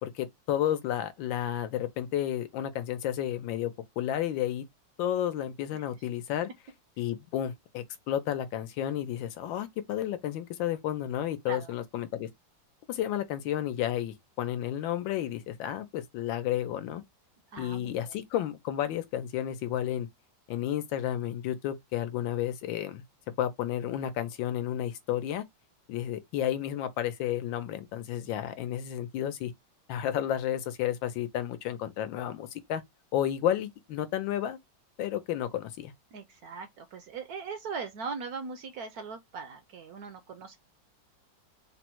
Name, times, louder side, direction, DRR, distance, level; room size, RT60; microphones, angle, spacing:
voice 1, 0.0-4.6 5.0-6.5 7.0-12.3 12.9-17.0 17.6-20.1 20.5-23.0 23.4-25.4 25.9-29.5 29.9-32.8 33.1-34.6 35.0-35.9, left 11 dB, 85° left, 1.4 m, -32 dB
voice 2, 5.7-6.1 11.5-11.7 17.5-18.1 36.1-40.6, right 5 dB, 70° right, 0.9 m, -40 dB
3.9 x 2.1 x 4.3 m
omnidirectional pair, 2.0 m